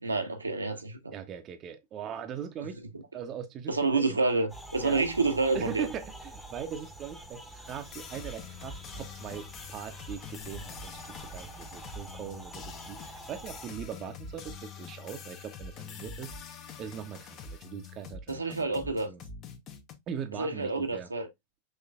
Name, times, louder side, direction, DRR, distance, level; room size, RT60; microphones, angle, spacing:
voice 1, 0.0-1.1 3.7-5.9 18.3-19.1 20.4-21.3, right 3 dB, 80° right, 0.8 m, -28 dB
voice 2, 1.1-2.8 3.1-4.2 4.8-5.0 5.5-16.3 16.8-19.3 20.1-21.1, right 8 dB, 30° right, 0.6 m, -40 dB
sound 1, 4.5-13.7, right 2 dB, ahead, 0.9 m, -47 dB
sound 2, 7.6-19.9, left 5 dB, 35° left, 0.8 m, -45 dB
5.5 x 3.1 x 2.4 m
figure-of-eight pair, 90°, 0 cm